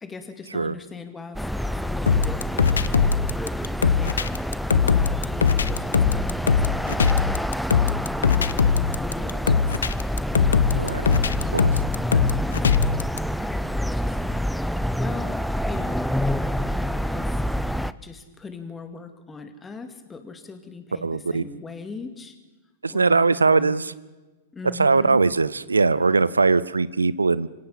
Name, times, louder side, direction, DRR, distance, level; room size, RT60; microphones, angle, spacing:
voice 1, 0.0-7.0 8.3-17.4 18.0-22.4 22.9-23.7 24.5-25.2, left 4 dB, 15° left, 8 dB, 2.6 m, -40 dB
sound 1, 1.4-17.9, equal, ahead, 0.6 m, -27 dB
sound 2, 2.1-13.2, left 6 dB, 80° left, 0.7 m, -21 dB
voice 2, 21.0-21.4 22.8-23.9 24.8-27.5, right 4 dB, 90° right, 18 dB, 0.6 m, -20 dB
26.0 x 17.5 x 5.8 m, 1.2 s
hypercardioid pair, 105°, 0 cm